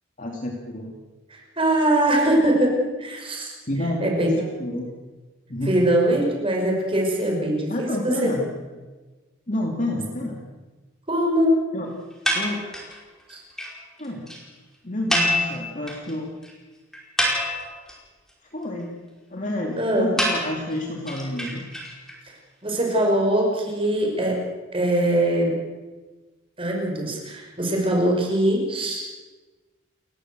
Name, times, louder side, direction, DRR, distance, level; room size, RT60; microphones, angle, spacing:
voice 1, 0.2-0.9 3.7-4.9 5.5-5.9 7.7-8.4 9.5-10.4 11.7-11.9 12.3-12.6 14.0-14.2 14.8-16.3 18.5-18.9 19.3-21.6, left 1 dB, 40° left, 0 dB, 2.6 m, -29 dB
voice 2, 1.3-3.6 4.0-4.3 5.7-8.3 11.1-11.6 13.3-13.4 19.8-20.1 22.6-24.4 24.7-25.6 26.6-29.1, right 1 dB, 25° right, 0 dB, 5.7 m, -22 dB
sound 1, 12.2-13.0 13.3-13.4 13.6-13.7 14.0-14.1 14.3-14.4 15.1-16.1 16.4-16.5 16.9-17.9 20.2-22.1, equal, 5° left, 5.0 m, -25 dB
30.0 x 14.0 x 8.0 m, 1.3 s
head